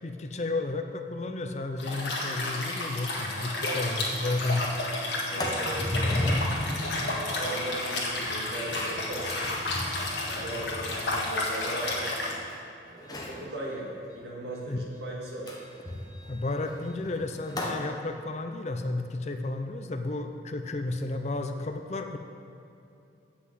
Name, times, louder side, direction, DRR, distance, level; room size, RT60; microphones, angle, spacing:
voice 1, 0.0-4.7 14.7-14.8 16.3-22.2, left 2 dB, 40° left, 6 dB, 0.5 m, -32 dB
Liquid, 1.8-12.3, left 2 dB, 80° left, 1.8 m, -31 dB
Sliding door, 3.0-3.1 3.4-3.5 3.9-4.2 4.5-12.5 13.0-13.5 15.5-17.9, left 1 dB, 20° left, 1.0 m, -35 dB
voice 2, 5.3-6.3 6.9-9.5 10.2-12.1 12.8-15.6, right 1 dB, 70° right, -3 dB, 2.1 m, -38 dB
7.7 x 6.0 x 8.0 m, 2.7 s
head